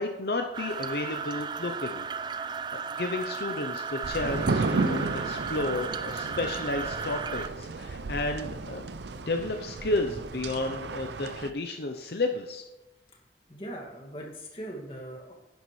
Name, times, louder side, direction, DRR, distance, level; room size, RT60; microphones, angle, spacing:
voice 1, 0.0-2.1 2.4-8.8 9.2-12.6, left 2 dB, 65° left, 4 dB, 0.7 m, -32 dB
sound 1, 0.5-7.5, right 5 dB, 25° right, 0.4 m, -35 dB
sound 2, 4.0-11.5, right 3 dB, 80° right, 0.6 m, -33 dB
voice 2, 13.5-15.3, right 1 dB, 30° left, -1 dB, 2.1 m, -40 dB
11.0 x 10.0 x 3.2 m, 1.0 s
head